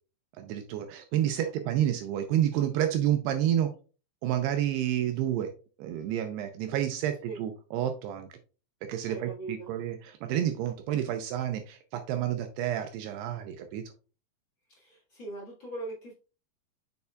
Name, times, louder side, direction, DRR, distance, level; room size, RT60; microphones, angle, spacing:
voice 1, 0.4-3.7 4.2-5.5 5.8-8.3 8.8-13.8, right 11 dB, 80° right, 7 dB, 2.5 m, -29 dB
voice 2, 9.0-9.7 14.7-16.1, right 2 dB, 55° left, -4 dB, 1.3 m, -40 dB
6.9 x 6.8 x 2.3 m, 0.34 s
omnidirectional pair, 5.1 m